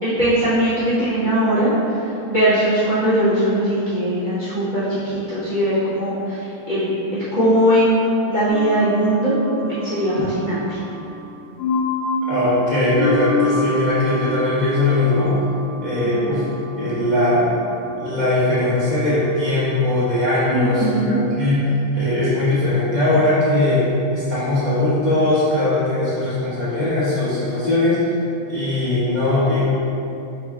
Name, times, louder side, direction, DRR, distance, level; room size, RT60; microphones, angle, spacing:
voice 1, 0.0-8.0 8.3-9.3 9.6-10.8 16.0-16.3 20.5-21.2, right 1 dB, 30° right, -14 dB, 1.0 m, -20 dB
sound 1, 8.5-20.7, left 1 dB, 80° left, 0.9 m, -28 dB
voice 2, 12.3-15.3 15.8-16.4 16.8-17.5 18.0-23.8 24.1-28.0 28.5-29.6, left 2 dB, 50° left, -13 dB, 0.5 m, -20 dB
5.0 x 4.2 x 2.4 m, 2.8 s
omnidirectional pair, 2.4 m